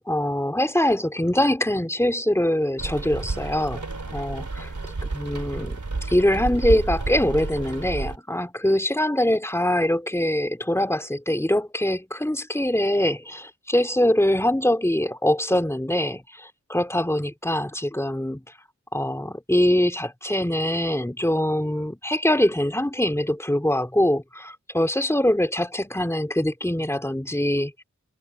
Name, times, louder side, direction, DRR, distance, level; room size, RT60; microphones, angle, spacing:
voice 1, 0.0-3.9 4.1-4.4 5.0-5.8 6.1-18.4 18.9-27.8, left 1 dB, 10° left, 2.6 m, -23 dB
Rain, 2.8-8.2, right 3 dB, 75° right, 3.4 m, -30 dB
wide cardioid pair, 55°, 30 cm